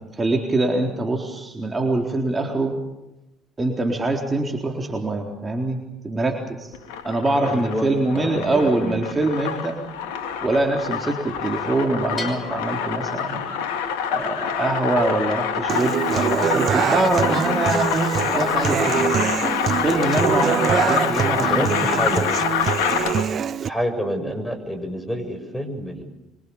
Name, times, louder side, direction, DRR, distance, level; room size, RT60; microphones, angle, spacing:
voice 1, 0.1-2.8 3.6-6.7 7.0-9.8 10.4-13.5 14.1-19.3 19.8-21.8, right 2 dB, 25° right, 2 dB, 4.0 m, -24 dB
sound 1, 6.7-23.4, left 7 dB, 75° left, 2.3 m, -26 dB
voice 2, 7.4-9.0 21.5-22.3 23.6-26.0, equal, 5° left, 8 dB, 6.9 m, -28 dB
Bell, 12.2-13.9, left 3 dB, 30° left, 6.4 m, -38 dB
Human voice / Acoustic guitar, 15.7-23.7, right 8 dB, 50° right, 0.9 m, -24 dB
26.0 x 25.0 x 7.1 m, 0.95 s
hypercardioid pair, 60°, 0 cm